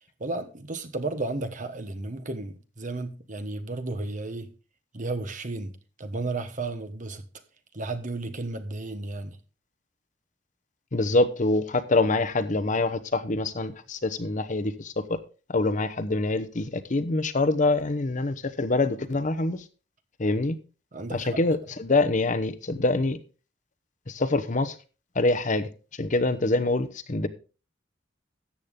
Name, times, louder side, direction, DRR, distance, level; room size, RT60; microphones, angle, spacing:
voice 1, 0.2-4.5 4.9-7.3 7.7-9.4 20.9-21.4, right 2 dB, 45° right, 1.3 m, -33 dB
voice 2, 10.9-15.2 15.5-19.6 20.2-20.6 21.1-23.2 24.1-24.8 25.1-25.7 26.0-27.3, left 2 dB, 45° left, 0.9 m, -25 dB
13.5 x 8.4 x 3.7 m
head